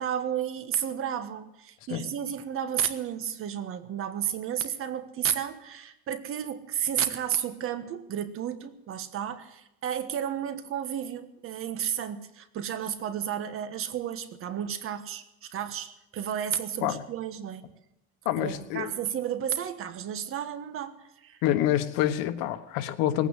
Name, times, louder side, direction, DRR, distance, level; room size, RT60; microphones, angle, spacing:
voice 1, 0.0-17.6 18.4-21.4, right 9 dB, 40° right, 11 dB, 1.4 m, -32 dB
voice 2, 18.2-18.9 21.4-23.3, left 12 dB, 80° left, 11 dB, 1.4 m, -27 dB
19.5 x 9.2 x 8.2 m, 0.89 s
cardioid pair, 150°, 33 cm